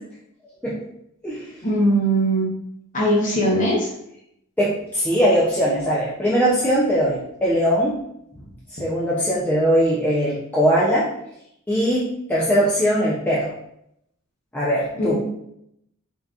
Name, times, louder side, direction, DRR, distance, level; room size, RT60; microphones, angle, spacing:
voice 1, 1.6-2.5 2.9-3.9 14.9-15.2, right 1 dB, 40° left, -4 dB, 0.8 m, -20 dB
voice 2, 4.6-8.0 8.8-11.1 11.7-13.5 14.5-15.2, equal, 10° left, -8 dB, 0.5 m, -20 dB
3.6 x 2.7 x 2.3 m, 0.77 s
head